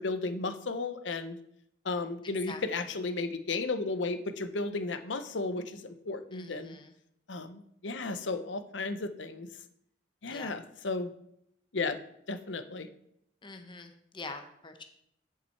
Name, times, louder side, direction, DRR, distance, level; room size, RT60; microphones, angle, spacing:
voice 1, 0.0-1.4 1.8-6.8 7.3-9.5 10.2-11.1 11.7-12.0 12.3-12.9, left 3 dB, 85° left, 10 dB, 0.8 m, -34 dB
voice 2, 2.5-2.8 6.3-7.0 10.3-10.5 13.4-14.8, left 3 dB, 25° left, 6 dB, 0.9 m, -45 dB
10.0 x 5.8 x 4.6 m, 0.74 s
head